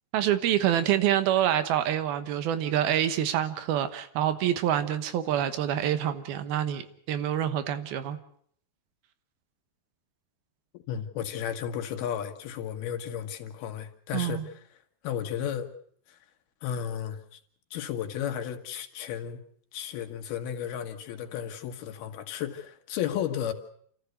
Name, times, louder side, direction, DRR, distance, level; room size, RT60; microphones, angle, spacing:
voice 1, 0.1-8.2 14.1-14.5, right 11 dB, 80° right, 11 dB, 3.1 m, -26 dB
voice 2, 10.7-14.4 15.0-15.7 16.1-16.2 16.6-17.4 17.7-19.4 19.7-23.5, left 9 dB, 85° left, 6 dB, 3.4 m, -33 dB
28.0 x 14.0 x 8.0 m, 0.62 s
omnidirectional pair, 4.3 m